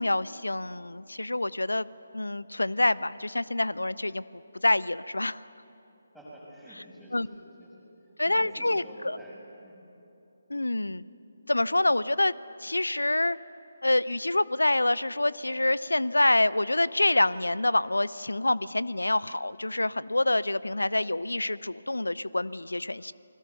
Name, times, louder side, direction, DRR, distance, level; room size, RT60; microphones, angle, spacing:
voice 1, 0.0-1.9 2.1-4.2 4.6-5.4 7.1-7.3 8.2-9.2 10.5-11.0 11.5-12.3 12.6-13.4 13.8-23.1, left 2 dB, 80° left, 18 dB, 0.6 m, -26 dB
voice 2, 6.1-7.9 8.2-9.8, right 1 dB, ahead, -8 dB, 6.5 m, -47 dB
29.0 x 21.0 x 6.8 m, 2.8 s
figure-of-eight pair, 150°, 0 cm